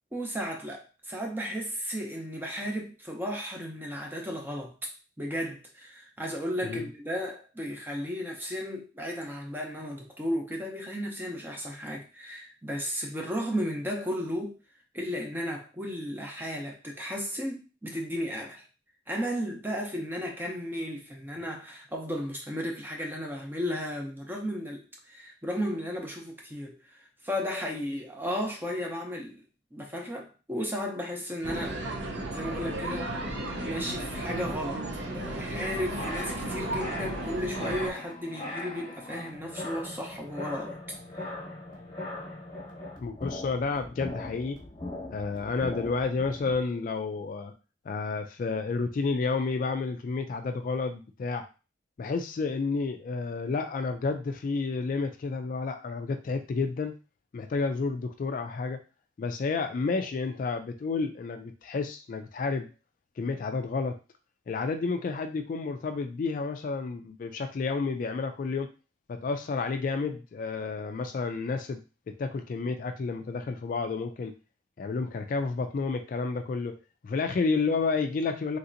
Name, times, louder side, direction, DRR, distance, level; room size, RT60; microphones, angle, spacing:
voice 1, 0.1-4.9 5.2-14.6 14.9-18.6 19.1-29.4 29.7-31.8 32.1-41.0, equal, 10° right, 0.6 m, -34 dB
sound 1, 31.4-37.9, right 1 dB, 75° right, 0.7 m, -34 dB
sound 2, 35.7-46.6, left 2 dB, 25° left, 1.0 m, -40 dB
voice 2, 43.0-44.6 45.1-47.5 47.9-51.5 52.0-56.9 57.3-58.8 59.2-62.7 63.2-64.0 64.5-68.7 69.1-74.3 74.8-76.8 77.0-78.6, left 4 dB, 50° left, 0.3 m, -30 dB
3.2 x 2.7 x 2.5 m
head